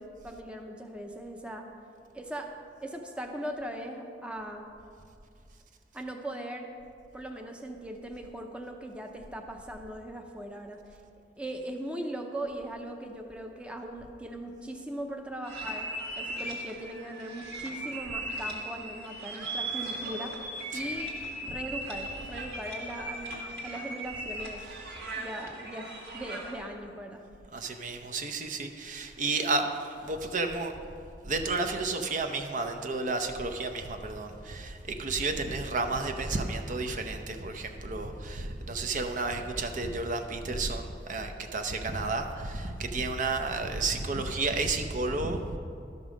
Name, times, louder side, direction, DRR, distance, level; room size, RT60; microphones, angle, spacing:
voice 1, 0.0-1.7 2.1-2.5 2.8-4.6 5.9-6.7 7.1-10.8 11.4-15.9 16.2-20.4 20.7-21.1 21.4-24.6 25.2-27.2, right 1 dB, 5° right, 3 dB, 0.6 m, -39 dB
sound 1, 15.4-26.6, right 1 dB, 70° right, 1.8 m, -38 dB
voice 2, 27.5-30.7 31.2-45.6, right 3 dB, 45° right, 5 dB, 0.7 m, -32 dB
12.0 x 5.4 x 6.2 m, 2.4 s
head